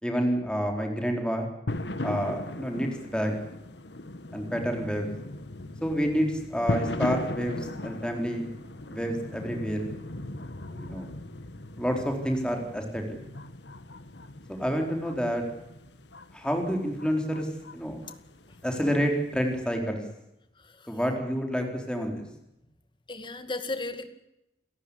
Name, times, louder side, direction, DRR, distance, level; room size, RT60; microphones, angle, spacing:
voice 1, 0.0-1.5 2.0-3.3 4.3-5.1 5.8-8.5 8.9-9.9 10.7-11.1 11.8-13.2 14.5-15.4 16.3-18.0 18.6-20.0 20.9-22.2, equal, 5° left, 3 dB, 4.0 m, -29 dB
sound 1, 1.7-19.7, left 1 dB, 70° left, 1.6 m, -38 dB
voice 2, 23.1-24.1, left 3 dB, 25° left, 9 dB, 2.2 m, -35 dB
29.0 x 14.5 x 10.0 m, 0.86 s
head